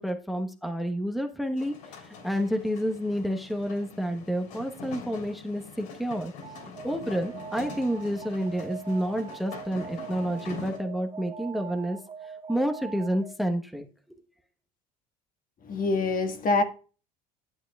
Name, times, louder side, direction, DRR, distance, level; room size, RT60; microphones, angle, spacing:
voice 1, 0.0-6.3 6.8-12.0 12.5-13.9, equal, ahead, 1.2 m, -29 dB
sound 1, 1.6-10.8, left 4 dB, 80° left, 3.5 m, -44 dB
Alarm, 6.4-13.5, right 7 dB, 30° right, 1.1 m, -43 dB
voice 2, 15.6-16.6, left 3 dB, 45° left, 1.6 m, -25 dB
11.5 x 8.1 x 2.4 m
hypercardioid pair, 70°, 20 cm